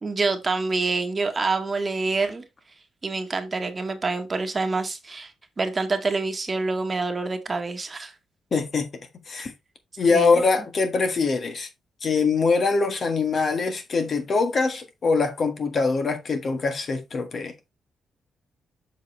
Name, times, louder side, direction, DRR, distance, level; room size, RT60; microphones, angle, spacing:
voice 1, 0.0-2.4 3.0-5.3 5.6-8.1 10.1-10.4, right 3 dB, 30° right, 1.4 m, -26 dB
voice 2, 8.5-8.9 9.3-9.5 10.0-11.7 12.0-17.5, left 4 dB, 45° left, 1.6 m, -23 dB
7.5 x 5.5 x 3.2 m
cardioid pair, 100°, 0 cm